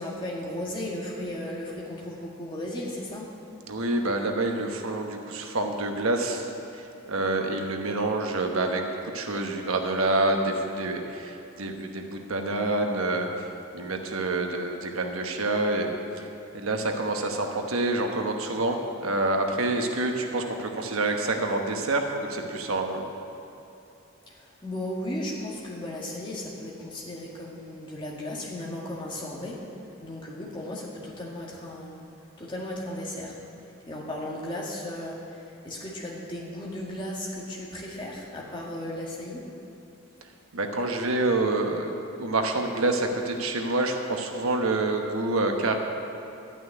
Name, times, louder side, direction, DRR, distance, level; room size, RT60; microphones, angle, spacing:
voice 1, 0.0-3.3 24.3-29.6 30.0-32.1 32.4-33.4 33.9-39.5, left 1 dB, 20° left, -4 dB, 1.8 m, -35 dB
voice 2, 3.7-13.5 13.7-16.3 16.5-23.1 40.5-45.7, right 2 dB, 85° right, 3 dB, 1.1 m, -27 dB
11.5 x 6.2 x 9.3 m, 3.0 s
head